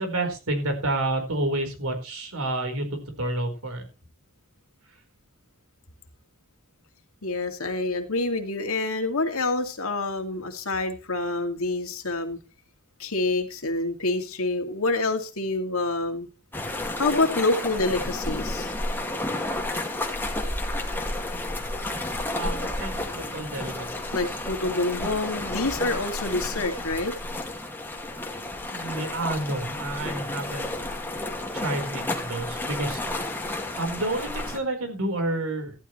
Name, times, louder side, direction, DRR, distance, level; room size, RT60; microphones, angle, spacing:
voice 1, 0.0-3.8 22.3-23.9 28.7-30.7 31.1-31.2 31.5-33.0 33.8-35.7, right 2 dB, 70° right, 5 dB, 4.5 m, -29 dB
voice 2, 7.2-12.4 13.0-16.3 17.0-18.7 24.1-27.1, left 2 dB, 65° left, 5 dB, 2.4 m, -27 dB
sound 1, 16.5-34.6, left 2 dB, 10° left, 2.2 m, -31 dB
14.5 x 13.0 x 3.2 m, 0.31 s
head